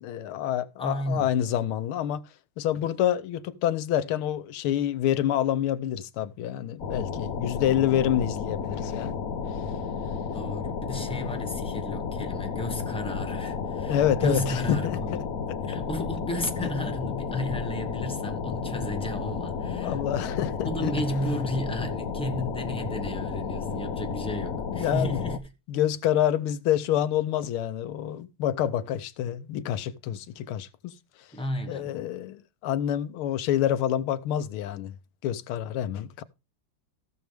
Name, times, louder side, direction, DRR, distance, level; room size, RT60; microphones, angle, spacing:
voice 1, 0.0-2.3 2.6-9.2 13.9-15.0 16.6-16.7 19.7-20.9 24.7-25.2 25.7-30.9 31.7-34.9 35.2-36.2, left 11 dB, 85° left, 1.6 m, -27 dB
voice 2, 0.8-1.3 10.3-15.2 15.6-20.1 20.6-25.5 31.3-32.0, equal, 5° left, 1.0 m, -33 dB
sound 1, 6.8-25.4, left 5 dB, 55° left, 1.2 m, -32 dB
16.0 x 6.3 x 3.4 m
omnidirectional pair, 2.3 m